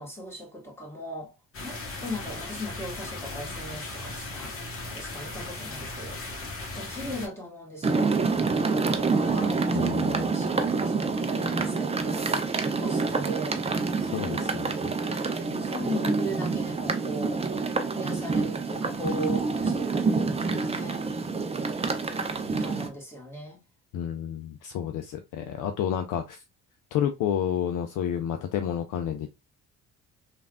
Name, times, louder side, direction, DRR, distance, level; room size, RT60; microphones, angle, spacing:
voice 1, 0.0-4.5 4.9-6.2 6.7-12.3 12.6-13.6 14.4-14.7 15.4-17.4 17.9-21.1 22.4-23.6, equal, 5° left, 1.5 m, -38 dB
sound 1, 1.5-7.3, left 2 dB, 35° left, 1.1 m, -37 dB
sound 2, 7.8-22.9, right 4 dB, 15° right, 0.5 m, -27 dB
voice 2, 9.7-10.3 14.0-14.5 23.9-26.4 26.9-29.3, left 9 dB, 50° left, 0.5 m, -30 dB
3.2 x 2.5 x 2.3 m
hypercardioid pair, 50°, 41 cm